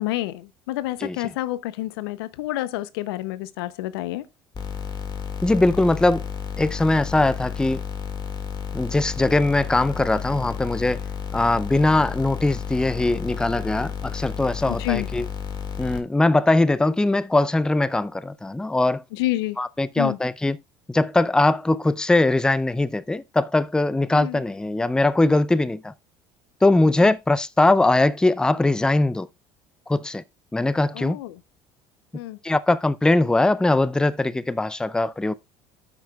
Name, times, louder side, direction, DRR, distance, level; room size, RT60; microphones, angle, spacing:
voice 1, 0.0-4.3 14.7-15.1 19.1-19.6 20.0-20.2 24.1-24.4 27.0-27.2 30.9-31.4 32.1-32.4, left 16 dB, 90° left, 0.6 m, -29 dB
sound 1, 4.5-16.0, left 7 dB, 35° left, 1.8 m, -32 dB
voice 2, 5.4-6.3 6.6-7.8 8.7-11.0 11.3-15.3 15.8-19.0 19.6-20.6 20.9-25.9 26.6-29.3 29.9-30.2 30.5-31.2 32.4-35.3, left 2 dB, 5° left, 0.4 m, -21 dB
13.5 x 6.0 x 2.3 m
supercardioid pair, 85°, 12 cm